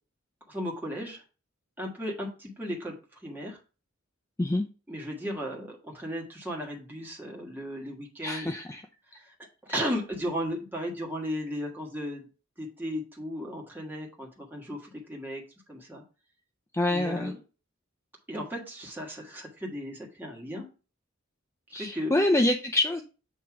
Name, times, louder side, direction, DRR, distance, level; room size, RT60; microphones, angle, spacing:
voice 1, 0.5-1.2 1.8-3.0 3.2-3.6 4.9-8.5 9.1-9.3 9.7-12.3 12.6-16.0 16.9-17.4 18.3-20.7 21.7-22.1, equal, 10° right, -1 dB, 1.5 m, -35 dB
voice 2, 8.2-8.8 9.7-9.9 16.7-17.3 21.7-23.0, left 1 dB, 15° left, 4 dB, 0.4 m, -26 dB
7.7 x 3.0 x 4.7 m, 0.34 s
head